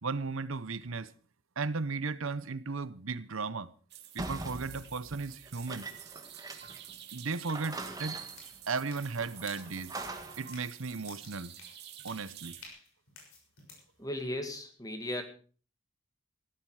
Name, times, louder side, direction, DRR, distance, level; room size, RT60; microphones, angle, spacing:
voice 1, 0.0-1.1 1.6-3.7 4.1-5.9 7.1-8.2 8.7-10.0 10.4-11.5 12.0-12.6, right 4 dB, 75° right, 0.9 m, -35 dB
sound 1, 3.9-12.7, right 10 dB, 50° right, 2.4 m, -50 dB
sound 2, 4.2-6.9 7.2-7.3 7.5-8.6 9.2-10.5, right 2 dB, 15° right, 1.6 m, -42 dB
sound 3, 8.0-13.9, left 3 dB, 90° left, 6.4 m, -54 dB
voice 2, 14.0-15.2, left 1 dB, 15° left, 2.2 m, -36 dB
16.0 x 13.0 x 4.9 m
head